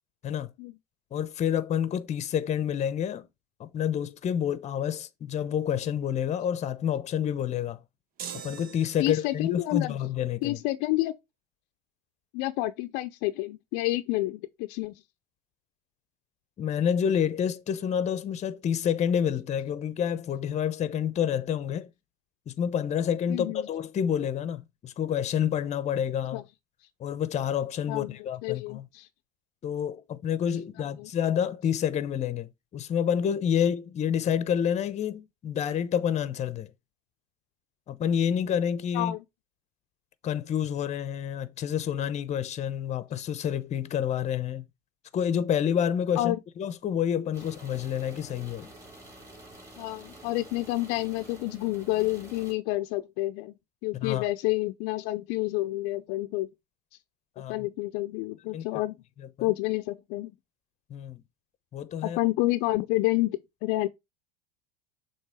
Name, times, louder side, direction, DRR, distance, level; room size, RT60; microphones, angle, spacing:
voice 1, 1.1-3.3 3.6-7.8 8.3-10.6 16.6-21.9 22.5-26.4 27.0-28.8 29.6-36.7 37.9-39.1 40.2-44.6 45.1-48.7 53.9-54.3 57.4-57.7 58.5-58.6 59.2-59.5 60.9-61.2 61.7-62.2, left 8 dB, 35° left, 0.9 m, -28 dB
sound 1, 8.2-9.5, right 8 dB, 45° right, 1.0 m, -42 dB
voice 2, 9.0-9.9 10.4-11.2 12.3-14.9 23.3-23.7 26.3-26.4 27.9-28.2 28.4-29.1 30.8-31.1 38.9-39.2 46.2-46.4 49.8-53.5 53.8-56.5 57.5-59.0 59.4-60.3 62.0-63.9, left 18 dB, 60° left, 0.6 m, -29 dB
sound 2, 47.3-52.5, right 2 dB, 15° right, 4.2 m, -48 dB
7.2 x 3.1 x 4.9 m
hypercardioid pair, 85°, 20 cm